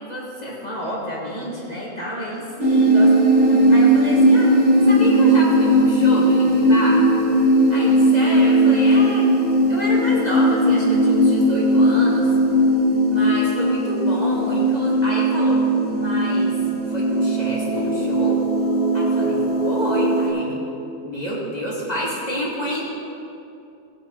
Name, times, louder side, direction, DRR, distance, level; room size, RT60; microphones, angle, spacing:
voice 1, 0.0-4.5 4.9-7.2 7.7-9.3 9.7-12.3 13.1-15.6 15.9-16.6 16.9-18.4 18.9-20.6 21.0-23.0, equal, 30° left, -6 dB, 2.8 m, -29 dB
sound 1, 2.6-20.3, right 1 dB, 85° right, 2.9 m, -17 dB
21.0 x 8.4 x 4.2 m, 2.7 s
omnidirectional pair, 1.5 m